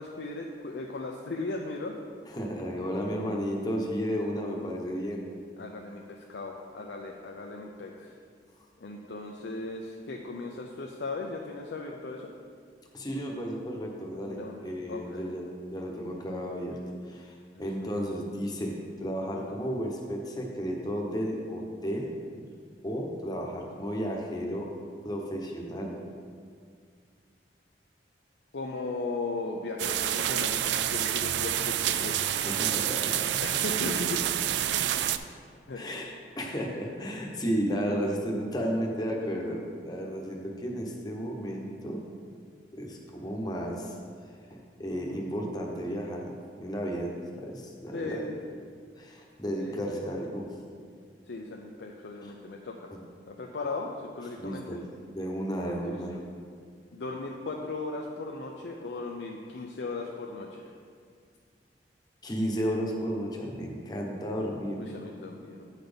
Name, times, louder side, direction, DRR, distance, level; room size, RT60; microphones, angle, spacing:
voice 1, 0.0-1.9 5.6-8.2 8.8-12.3 14.3-15.3 17.5-17.6 28.5-32.3 33.4-34.2 35.7-35.8 47.9-48.4 49.6-50.0 51.3-52.9 53.3-53.9 54.1-54.8 55.8-56.0 56.9-60.7 64.8-65.7, left 3 dB, 80° left, 0 dB, 0.5 m, -37 dB
voice 2, 2.3-5.3 12.9-16.8 17.0-22.1 22.8-24.7 25.0-25.9 32.4-33.4 35.7-42.0 42.7-43.9 44.5-46.3 46.6-48.3 49.0-50.5 54.4-54.8 55.1-56.2 62.2-64.9, equal, 25° left, 0 dB, 1.0 m, -33 dB
sound 1, 29.8-35.2, right 11 dB, 75° right, 0.3 m, -28 dB
9.0 x 4.1 x 5.1 m, 2.1 s
head